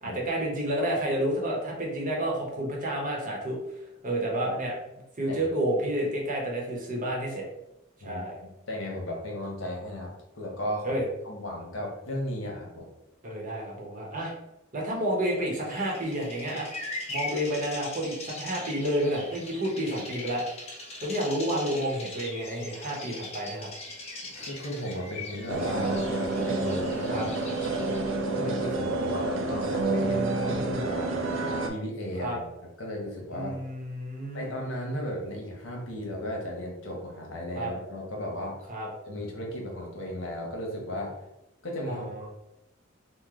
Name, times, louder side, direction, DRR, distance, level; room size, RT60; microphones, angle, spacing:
voice 1, 0.0-4.7 5.2-7.4 8.0-8.4 10.8-11.0 13.2-14.3 14.7-16.7 17.1-20.4 21.0-23.7 27.1-27.3 30.0-30.9 32.2-32.4 33.3-34.5 37.5-37.7 38.7-38.9 41.9-42.3, right 1 dB, 40° right, -2 dB, 0.9 m, -30 dB
voice 2, 8.0-11.0 11.2-12.9 24.2-27.3 28.3-31.2 31.6-32.4 32.8-33.5 34.3-38.6 39.1-41.1 41.6-42.1, left 1 dB, 70° left, 0 dB, 0.8 m, -35 dB
Bird vocalization bird call bird song, 15.5-28.2, left 2 dB, 30° left, 0.8 m, -41 dB
sound 1, 25.5-31.7, right 2 dB, 70° right, 0.4 m, -29 dB
3.0 x 2.1 x 3.6 m, 0.89 s
head